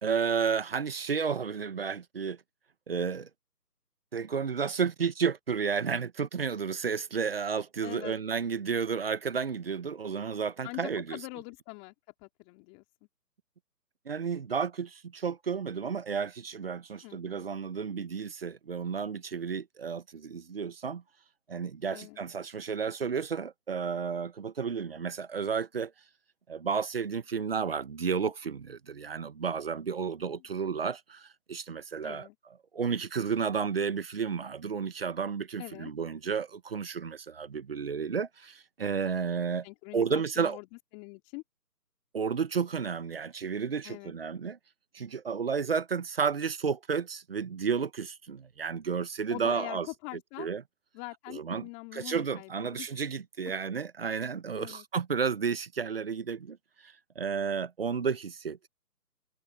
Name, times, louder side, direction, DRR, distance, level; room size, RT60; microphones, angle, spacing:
voice 1, 0.0-2.4 2.9-3.3 4.1-11.2 14.0-21.0 21.5-25.9 26.5-32.3 32.7-39.7 39.9-40.6 42.1-44.6 44.9-49.9 50.4-50.6 51.3-56.6 56.8-58.7, right 6 dB, 35° right, 1.2 m, -32 dB
voice 2, 7.8-8.1 10.6-11.9 12.2-12.8 17.0-17.5 21.9-22.2 30.2-30.4 32.0-32.3 35.6-35.9 39.6-40.7 40.9-41.4 43.8-44.1 49.3-50.5 50.9-52.9 54.6-54.8, left 29 dB, 15° left, 3.4 m, -43 dB
figure-of-eight pair, 155°, 49 cm